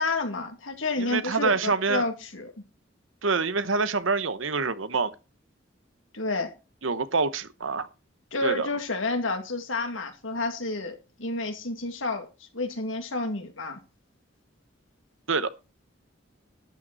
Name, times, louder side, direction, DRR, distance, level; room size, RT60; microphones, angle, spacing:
voice 1, 0.0-2.5 6.1-6.5 8.3-12.3 12.5-13.8, left 2 dB, 90° left, 2.4 m, -30 dB
voice 2, 1.0-2.1 3.2-5.1 6.8-7.9 8.4-8.7 15.3-15.5, right 4 dB, 90° right, 1.0 m, -26 dB
12.5 x 9.1 x 4.2 m
head